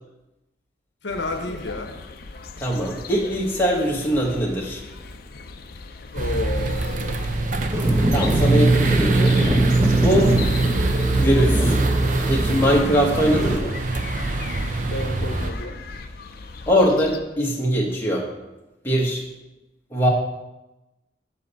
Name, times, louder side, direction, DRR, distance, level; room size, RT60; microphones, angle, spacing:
voice 1, 1.0-1.9 6.1-7.2 14.9-15.8, left 2 dB, 70° left, 4 dB, 0.9 m, -30 dB
sound 1, 1.1-17.2, left 4 dB, 50° left, 0.6 m, -38 dB
voice 2, 2.6-4.8 8.1-9.4 9.8-10.3 11.2-11.8 12.3-13.8 16.7-18.3 18.8-19.2 19.9-20.1, equal, 10° left, -3 dB, 1.3 m, -21 dB
sound 2, 6.2-15.5, right 3 dB, 45° right, 0.6 m, -22 dB
sound 3, 7.7-13.6, equal, 15° right, 0.9 m, -24 dB
7.5 x 4.2 x 6.8 m, 0.99 s
head